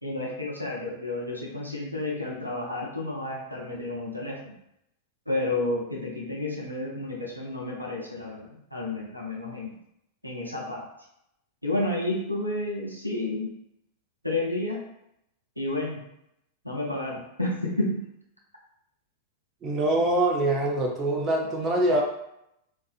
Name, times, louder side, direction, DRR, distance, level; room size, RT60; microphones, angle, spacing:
voice 1, 0.0-4.6 5.3-9.7 10.2-10.9 11.6-13.5 14.2-14.8 15.6-16.0 16.6-18.0, left 2 dB, 90° right, -3 dB, 0.5 m, -31 dB
voice 2, 19.6-22.0, right 1 dB, 30° right, 0 dB, 0.5 m, -24 dB
2.5 x 2.4 x 2.4 m, 0.79 s
figure-of-eight pair, 90°, 0 cm